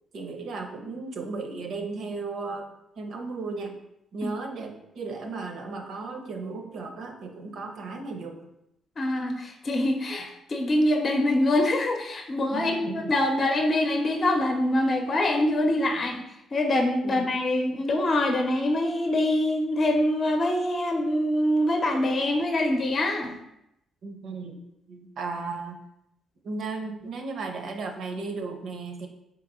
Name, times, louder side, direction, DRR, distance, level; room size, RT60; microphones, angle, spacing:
voice 1, 0.1-3.8 4.1-8.5 12.5-13.1 17.0-17.3 24.0-25.8 26.4-29.1, right 3 dB, 65° right, 4 dB, 0.7 m, -35 dB
voice 2, 9.0-16.2 16.5-23.3, left 1 dB, 45° left, 3 dB, 0.7 m, -24 dB
4.0 x 3.0 x 3.7 m, 0.82 s
cardioid pair, 90°, 0 cm